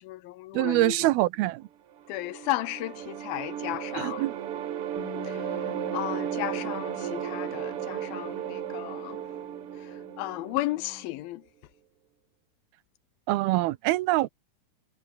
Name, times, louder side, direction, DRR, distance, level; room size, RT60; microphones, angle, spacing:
voice 1, 0.0-1.1 2.1-4.2 5.2-5.5 5.9-9.2 9.8-11.4, left 16 dB, 80° left, 2.5 m, -34 dB
voice 2, 0.5-1.7 3.9-4.3 13.3-14.3, right 18 dB, 85° right, 2.7 m, -24 dB
sound 1, 1.9-11.1, right 10 dB, 60° right, 1.5 m, -35 dB
Bass guitar, 5.0-11.2, left 8 dB, 55° left, 3.5 m, -47 dB
omnidirectional pair, 4.4 m